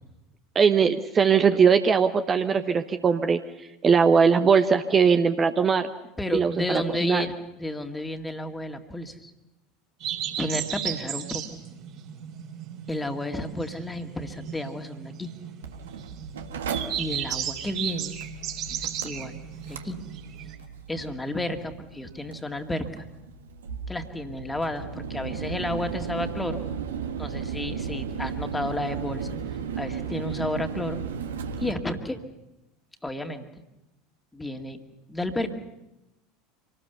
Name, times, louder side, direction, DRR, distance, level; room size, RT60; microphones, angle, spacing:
voice 1, 0.5-3.4 3.8-5.9 6.3-7.2, right 6 dB, 30° right, 8 dB, 1.0 m, -20 dB
voice 2, 6.2-9.3 10.4-11.4 12.9-15.3 17.0-18.2 18.7-19.3 19.7-20.0 20.9-23.0 23.9-26.6 27.2-29.3 29.8-31.0 31.6-32.2 33.0-33.4 34.3-34.8 35.1-35.5, left 1 dB, 10° left, 5 dB, 2.2 m, -32 dB
sound 1, 10.0-20.6, right 9 dB, 50° right, 3.6 m, -35 dB
Mechanical fan, 15.6-31.7, right 6 dB, 70° right, 1.6 m, -35 dB
26.5 x 19.0 x 6.9 m, 0.93 s
figure-of-eight pair, 75°, 0 cm